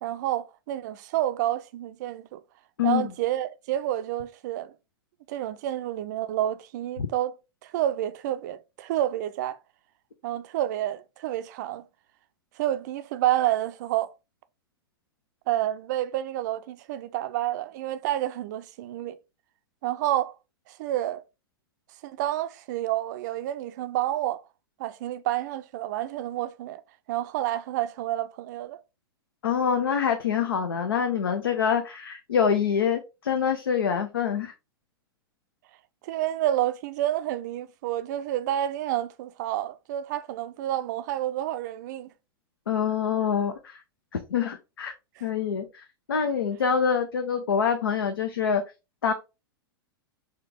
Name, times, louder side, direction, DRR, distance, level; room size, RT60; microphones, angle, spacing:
voice 1, 0.0-2.4 2.8-4.7 5.3-7.4 7.6-9.6 10.2-11.8 12.6-14.1 15.5-19.2 19.8-20.4 20.7-21.2 22.0-24.4 24.8-26.8 27.1-28.8 36.0-42.1, right 13 dB, 50° right, 0.4 m, -29 dB
voice 2, 2.8-3.1 29.4-34.5 42.7-43.8 44.3-44.9 45.2-48.6 49.0-49.1, left 7 dB, 75° left, 0.5 m, -25 dB
4.4 x 2.4 x 3.5 m
figure-of-eight pair, 95°, 13 cm